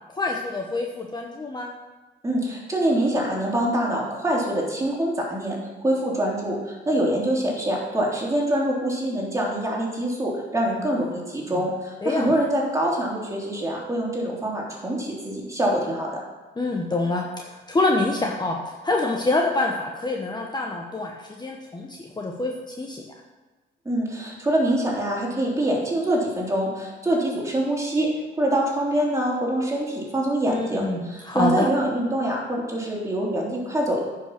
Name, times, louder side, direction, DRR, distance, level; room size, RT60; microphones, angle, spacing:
voice 1, 0.1-1.7 11.1-11.2 11.5-11.6 12.0-12.3 16.6-23.0 30.5-31.0 31.2-31.7, left 2 dB, 20° left, 0 dB, 1.1 m, -26 dB
voice 2, 2.2-16.2 23.8-28.1 28.4-34.0, right 1 dB, 15° right, -3 dB, 3.2 m, -25 dB
9.7 x 5.8 x 6.0 m, 1.2 s
cardioid pair, 90°, 20 cm